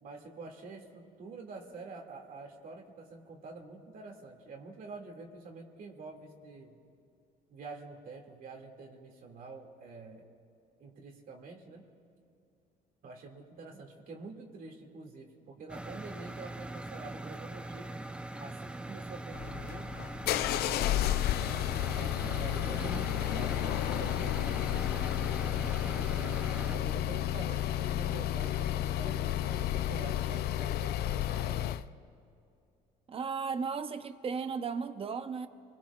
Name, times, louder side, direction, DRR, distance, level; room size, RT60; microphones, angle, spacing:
voice 1, 0.0-6.8 7.5-10.2 10.8-11.8 13.0-18.0 18.4-19.9 20.5-24.8 25.2-26.4 26.7-31.8, right 3 dB, 60° right, 2.2 m, -47 dB
sound 1, 15.7-26.8, right 1 dB, 5° right, 0.4 m, -41 dB
sound 2, 19.3-31.9, left 13 dB, 70° left, 0.4 m, -32 dB
voice 2, 33.1-35.5, right 5 dB, 35° right, 0.8 m, -35 dB
27.5 x 21.5 x 2.4 m
cardioid pair, 110°, 17 cm